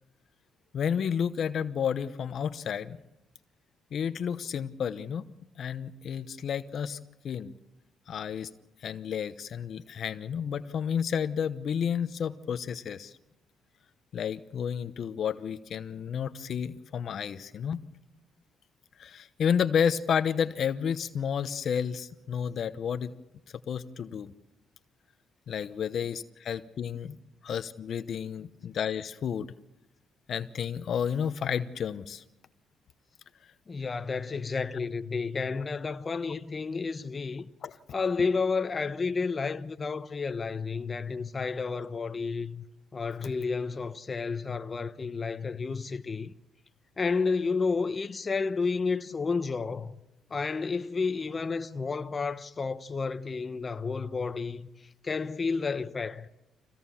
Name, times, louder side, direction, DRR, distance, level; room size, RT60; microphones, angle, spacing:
voice 1, 0.7-3.0 3.9-5.2 5.6-7.0 7.2-7.5 8.1-8.5 8.8-13.1 14.1-17.8 19.0-23.1 23.7-24.3 25.5-27.2 27.4-29.5 30.3-32.2 37.6-37.8, left 7 dB, 60° left, 0.9 m, -31 dB
voice 2, 33.7-37.4 37.9-42.6 42.9-46.3 47.0-50.0 50.3-54.7 55.0-56.3, left 4 dB, 35° left, 0.9 m, -31 dB
24.5 x 17.0 x 7.2 m
cardioid pair, 90°, 0 cm